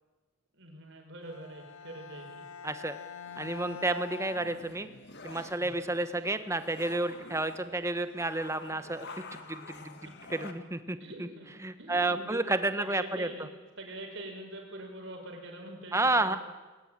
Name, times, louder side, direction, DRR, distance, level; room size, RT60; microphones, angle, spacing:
voice 1, 0.5-2.5 5.6-5.7 9.8-10.1 11.0-11.5 11.8-12.4 12.8-13.5 13.8-16.4, right 1 dB, 60° right, 3 dB, 5.7 m, -44 dB
Bowed string instrument, 1.2-5.3, left 6 dB, 75° left, 2.1 m, -45 dB
voice 2, 2.6-3.0 3.4-4.9 5.2-9.1 9.5-9.8 10.3-11.3 11.6-13.3 15.9-16.4, right 2 dB, 15° right, 10 dB, 1.2 m, -30 dB
sound 1, 3.3-10.5, left 3 dB, 50° left, 2.1 m, -49 dB
21.5 x 19.0 x 9.0 m, 1.2 s
head